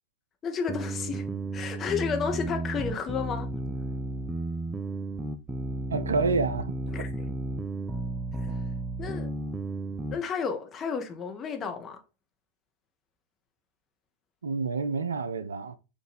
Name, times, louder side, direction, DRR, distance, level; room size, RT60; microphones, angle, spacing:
voice 1, 0.4-1.3 1.5-3.5 6.9-7.1 8.3-8.5 9.0-9.3 10.1-12.0, left 6 dB, 25° left, 0.8 m, -32 dB
sound 1, 0.7-10.2, right 2 dB, 10° right, 0.4 m, -33 dB
voice 2, 5.9-6.8 14.4-15.8, right 4 dB, 70° right, 0.4 m, -28 dB
4.9 x 2.5 x 4.1 m
figure-of-eight pair, 90°, 0 cm